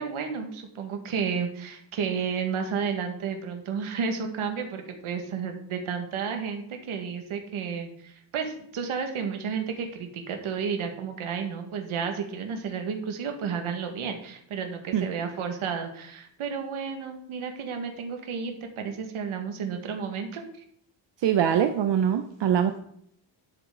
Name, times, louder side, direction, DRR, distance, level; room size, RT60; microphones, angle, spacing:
voice 1, 0.0-20.4, right 6 dB, 75° right, 4 dB, 1.9 m, -32 dB
voice 2, 21.2-22.8, right 9 dB, 60° right, 8 dB, 0.8 m, -23 dB
12.5 x 8.0 x 3.9 m, 0.67 s
wide cardioid pair, 175°, 49 cm